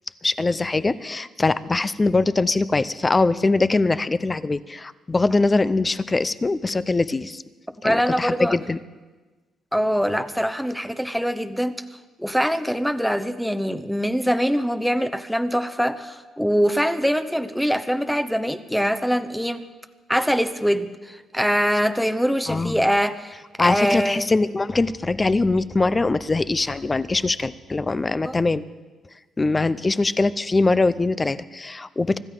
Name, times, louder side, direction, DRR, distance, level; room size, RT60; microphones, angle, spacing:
voice 1, 0.2-7.4 7.8-8.8 22.5-22.9 23.6-28.6 29.4-32.2, left 3 dB, 25° left, 15 dB, 0.6 m, -22 dB
voice 2, 7.8-8.6 9.7-11.7 12.2-19.7 20.1-24.3 28.2-28.3, equal, ahead, 10 dB, 0.9 m, -23 dB
25.0 x 13.5 x 3.9 m, 1.3 s
cardioid pair, 90°, 0 cm